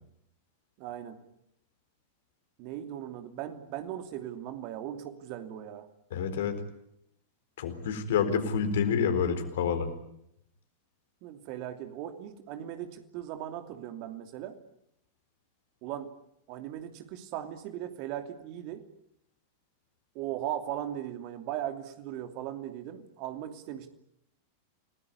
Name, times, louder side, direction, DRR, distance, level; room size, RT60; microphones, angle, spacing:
voice 1, 0.8-1.2 2.6-5.9 11.2-14.6 15.8-16.1 16.5-18.8 20.1-23.9, right 11 dB, 45° right, 7 dB, 2.7 m, -38 dB
voice 2, 6.1-6.6 7.6-9.9, left 6 dB, 60° left, 7 dB, 4.2 m, -28 dB
29.5 x 19.5 x 9.8 m, 0.80 s
figure-of-eight pair, 90°, 0 cm